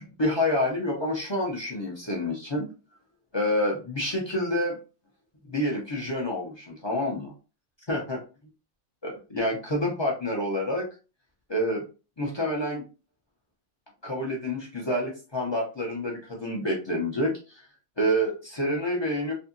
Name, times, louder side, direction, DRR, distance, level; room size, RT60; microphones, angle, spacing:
voice 1, 0.0-2.7 3.3-4.8 5.5-7.3 7.9-8.2 9.0-10.9 11.5-11.8 12.2-12.8 14.0-17.6 18.0-19.3, left 1 dB, 40° left, -2 dB, 0.3 m, -28 dB
2.7 x 2.6 x 2.5 m, 0.33 s
omnidirectional pair, 1.4 m